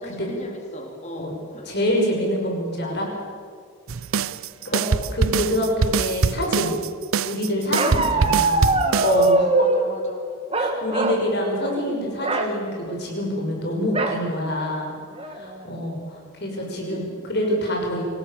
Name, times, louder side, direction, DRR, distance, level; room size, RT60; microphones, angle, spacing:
voice 1, 0.0-1.7 4.6-5.0 8.1-9.1 9.5-10.3 13.8-14.0 16.6-17.1, left 1 dB, 30° left, 2 dB, 3.3 m, -39 dB
voice 2, 1.7-3.1 4.6-4.8 5.1-6.7 7.2-8.7 9.0-9.5 10.6-15.0 15.3-18.0, equal, 50° left, 1 dB, 5.9 m, -26 dB
sound 1, 3.9-9.3, right 5 dB, 75° right, 0.6 m, -23 dB
Bark, 7.7-9.9 10.5-11.3 11.6-11.8 12.2-12.5 13.9-14.2 14.8-14.9 15.2-15.6, right 2 dB, 25° right, 1.7 m, -22 dB
25.5 x 18.0 x 7.2 m, 2.1 s
head